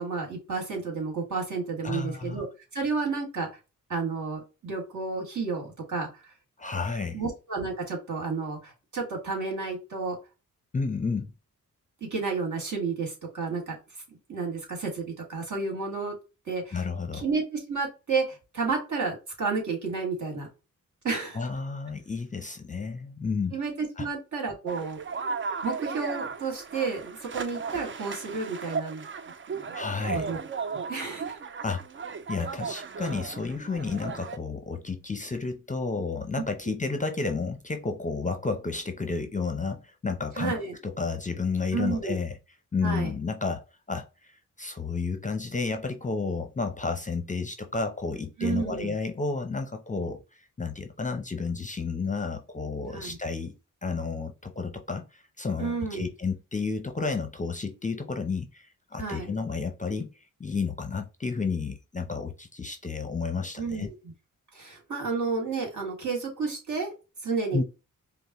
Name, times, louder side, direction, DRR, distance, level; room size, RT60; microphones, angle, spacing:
voice 1, 0.0-2.5 2.7-3.5 3.9-6.3 7.1-10.2 12.0-13.8 14.1-16.2 16.5-16.8 17.1-20.5 21.0-21.4 23.5-25.0 25.6-29.0 29.5-29.7 30.1-30.4 30.7-31.4 40.4-40.7 41.7-42.2 42.8-43.1 48.4-48.9 52.9-53.2 55.6-56.1 59.0-59.3 63.6-64.1 64.5-66.9 67.2-67.6, right 4 dB, 60° right, 2.0 m, -31 dB
voice 2, 1.8-2.4 6.6-7.2 10.7-11.3 16.7-17.2 21.3-23.5 24.0-24.1 29.7-30.3 31.6-40.5 41.0-42.4 42.7-53.5 53.8-63.9 67.5-67.6, left 4 dB, 20° left, 0.6 m, -31 dB
sound 1, 24.7-34.4, right 5 dB, 35° right, 0.4 m, -36 dB
5.2 x 2.1 x 2.9 m
cardioid pair, 65°, 34 cm